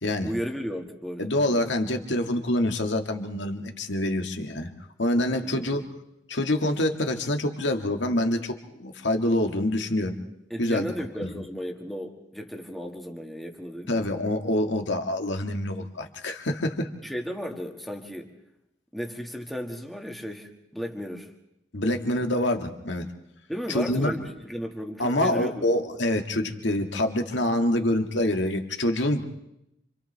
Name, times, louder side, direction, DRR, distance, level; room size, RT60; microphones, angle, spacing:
voice 1, 0.2-1.3 5.4-5.8 10.5-14.0 17.0-18.3 18.9-21.3 23.5-25.7, equal, ahead, 2 dB, 1.7 m, -34 dB
voice 2, 1.2-4.7 5.0-5.8 6.3-10.2 10.6-10.9 11.2-11.3 13.9-16.9 21.7-23.0 23.7-24.1 25.0-29.2, left 1 dB, 85° left, 5 dB, 1.8 m, -26 dB
29.5 x 26.5 x 3.4 m, 0.82 s
head